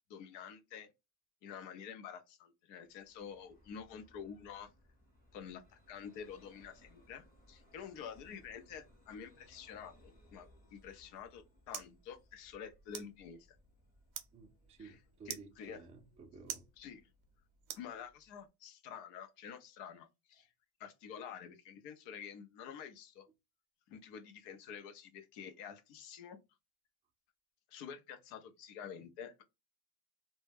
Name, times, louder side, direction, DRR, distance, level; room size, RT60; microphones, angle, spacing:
voice 1, 0.1-0.9 1.4-4.7 5.3-13.6 14.8-15.0 15.3-15.8 16.8-17.0 17.7-20.5 20.8-23.3 23.9-26.4 27.7-29.4, left 7 dB, 75° left, 0.8 m, -49 dB
Vehicle, 2.8-18.3, left 1 dB, 20° left, 0.9 m, -66 dB
Soft Clicks, 10.9-18.5, right 11 dB, 85° right, 0.7 m, -51 dB
voice 2, 14.3-16.7, right 4 dB, 20° right, 0.3 m, -54 dB
2.2 x 2.1 x 3.2 m
cardioid pair, 130°, 42 cm